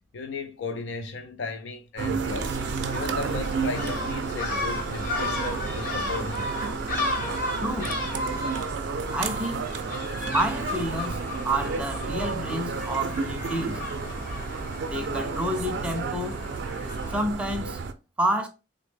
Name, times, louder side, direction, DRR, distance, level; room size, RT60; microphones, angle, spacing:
voice 1, 0.1-2.6 2.9-6.5, left 4 dB, 85° left, 0.4 m, -35 dB
sound 1, 2.0-17.9, right 5 dB, 70° right, 0.4 m, -32 dB
Gull seagull, 2.2-17.2, left 1 dB, 50° left, 0.9 m, -34 dB
voice 2, 7.6-8.0 9.1-9.7 10.2-11.2 11.4-13.8 14.8-16.4 17.1-17.8 18.2-18.5, right 1 dB, 5° right, 0.4 m, -29 dB
3.3 x 2.1 x 3.2 m
head